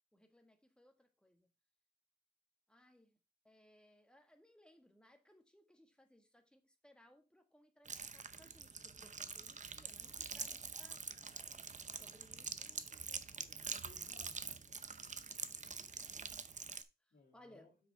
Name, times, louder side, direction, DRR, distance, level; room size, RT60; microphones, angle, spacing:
voice 1, 0.1-1.5 2.7-3.2 3.4-11.2 11.9-13.2 17.1-17.7, left 1 dB, 5° left, 1.6 m, -66 dB
sound 1, 7.9-16.8, right 5 dB, 45° right, 0.7 m, -46 dB
voice 2, 13.1-14.8 17.1-17.7, left 3 dB, 70° left, 2.7 m, -65 dB
7.5 x 6.2 x 3.4 m
wide cardioid pair, 95°, 17 cm